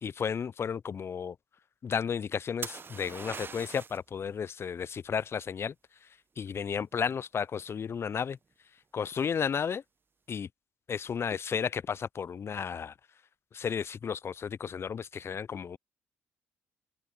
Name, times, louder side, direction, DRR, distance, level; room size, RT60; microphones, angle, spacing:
voice 1, 0.0-1.4 1.8-5.7 6.4-8.4 8.9-9.8 10.3-10.5 10.9-12.9 13.5-15.8, left 7 dB, 40° left, 0.4 m, -33 dB
sound 1, 2.6-4.1 7.8-8.2, right 5 dB, 35° right, 0.9 m, -41 dB
hypercardioid pair, 55°, 6 cm